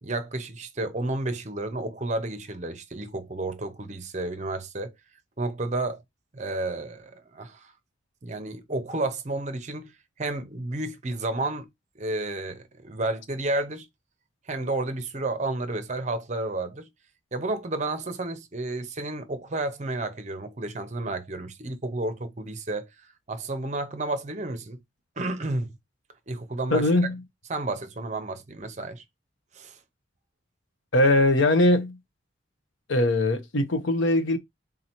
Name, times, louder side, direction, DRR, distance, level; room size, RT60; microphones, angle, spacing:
voice 1, 0.0-4.9 5.4-6.0 6.3-7.7 8.2-9.9 10.2-11.7 12.0-13.9 14.5-16.9 17.3-24.8 25.2-25.7 26.3-26.9 27.5-29.0 29.5-29.8, right 2 dB, 35° right, 0.7 m, -31 dB
voice 2, 26.7-27.2 30.9-32.0 32.9-34.4, left 1 dB, 75° left, 0.8 m, -21 dB
3.8 x 2.8 x 4.3 m
head